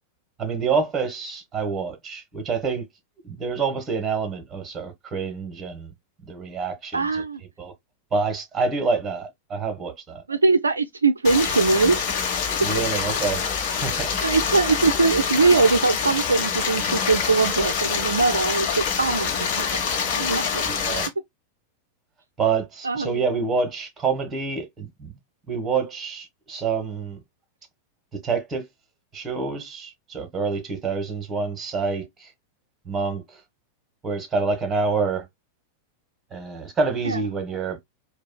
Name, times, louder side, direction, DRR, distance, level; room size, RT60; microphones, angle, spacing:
voice 1, 0.4-2.9 3.2-5.9 6.2-7.2 7.6-7.7 8.1-10.2 12.6-14.3 20.6-21.1 22.4-25.1 25.5-27.2 28.1-28.6 29.1-32.3 32.8-33.4 34.0-35.3 36.3-37.8, right 4 dB, 20° right, 1.3 m, -27 dB
voice 2, 6.9-7.4 10.3-12.0 14.2-19.8 20.2-20.6 22.8-23.2 37.0-37.2, right 3 dB, 75° right, 0.3 m, -21 dB
Stream, 11.2-21.1, left 6 dB, 45° left, 1.1 m, -25 dB
4.8 x 2.3 x 2.2 m
figure-of-eight pair, 90°, 0 cm